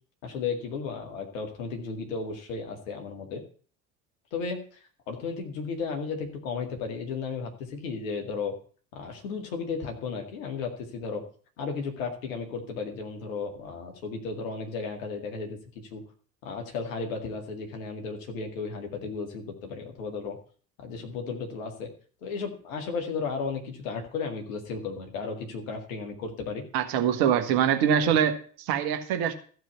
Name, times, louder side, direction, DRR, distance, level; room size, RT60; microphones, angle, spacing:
voice 1, 0.2-3.4 4.3-4.6 5.1-8.5 8.9-11.2 11.6-15.6 15.9-16.0 16.4-20.4 20.8-21.9 22.2-26.6 28.1-28.2, left 5 dB, 65° left, 3 dB, 2.2 m, -34 dB
voice 2, 26.7-29.3, right 9 dB, 55° right, 7 dB, 1.5 m, -24 dB
14.0 x 4.8 x 8.1 m, 0.44 s
figure-of-eight pair, 55°, 42 cm